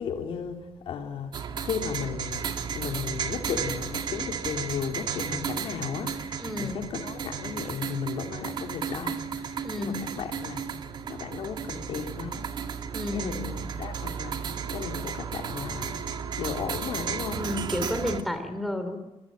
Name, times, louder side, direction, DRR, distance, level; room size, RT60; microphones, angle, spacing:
voice 1, 0.0-10.7 11.1-12.4 13.1-16.0 16.3-17.4, left 6 dB, 60° left, 3.6 m, -35 dB
sound 1, 1.3-18.2, right 7 dB, 45° right, 2.2 m, -34 dB
voice 2, 6.4-6.9 9.6-10.1 12.9-13.5 17.3-19.0, left 1 dB, ahead, 2.9 m, -31 dB
26.5 x 22.0 x 9.2 m
cardioid pair, 170°, 10 cm